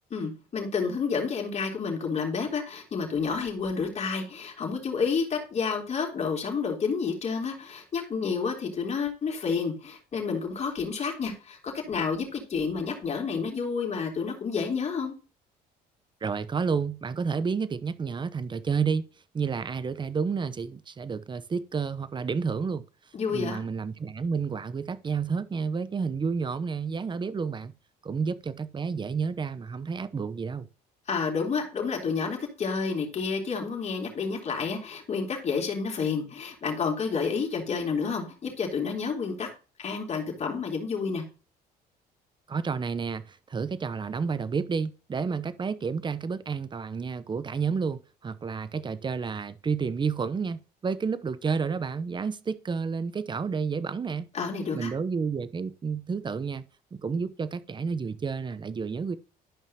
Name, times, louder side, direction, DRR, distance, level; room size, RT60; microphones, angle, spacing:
voice 1, 0.1-15.1 23.1-23.6 31.1-39.5 39.8-41.2 54.3-54.9, left 5 dB, 40° left, 3.6 m, -30 dB
voice 2, 16.2-19.1 19.3-22.8 23.3-27.7 28.0-30.7 42.5-54.3 54.7-56.6 56.9-59.2, right 5 dB, 25° right, 0.8 m, -30 dB
12.5 x 5.5 x 2.9 m
cardioid pair, 110°, 17 cm